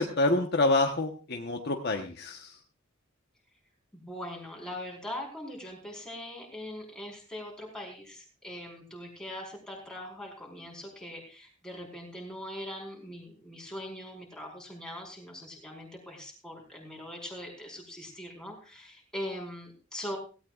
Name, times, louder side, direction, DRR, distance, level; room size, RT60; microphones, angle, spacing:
voice 1, 0.0-2.6, left 2 dB, 50° left, 3 dB, 1.2 m, -27 dB
voice 2, 3.9-20.2, left 1 dB, 5° left, -1 dB, 4.6 m, -41 dB
17.0 x 17.0 x 2.5 m, 0.34 s
head